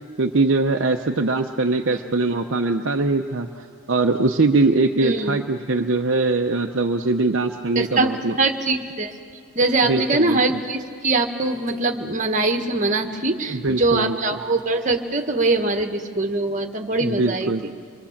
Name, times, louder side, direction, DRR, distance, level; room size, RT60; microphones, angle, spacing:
voice 1, 0.2-8.4 9.8-10.4 13.5-14.2 17.0-17.6, right 3 dB, 55° right, 4 dB, 0.7 m, -22 dB
voice 2, 5.0-5.4 7.7-9.1 9.5-17.5, right 2 dB, 35° right, 5 dB, 1.4 m, -22 dB
26.0 x 23.0 x 7.3 m, 2.1 s
head